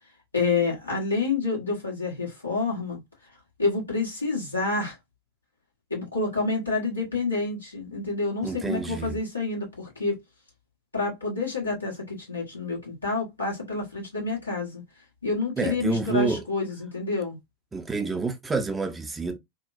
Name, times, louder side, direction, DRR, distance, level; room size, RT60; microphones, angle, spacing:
voice 1, 0.3-3.0 3.6-5.0 5.9-10.2 10.9-14.8 15.2-17.4, left 3 dB, 80° left, 1.4 m, -28 dB
voice 2, 8.4-9.2 15.6-16.4 17.7-19.4, right 4 dB, 15° right, 0.4 m, -28 dB
2.9 x 2.1 x 2.5 m
figure-of-eight pair, 90°, 0 cm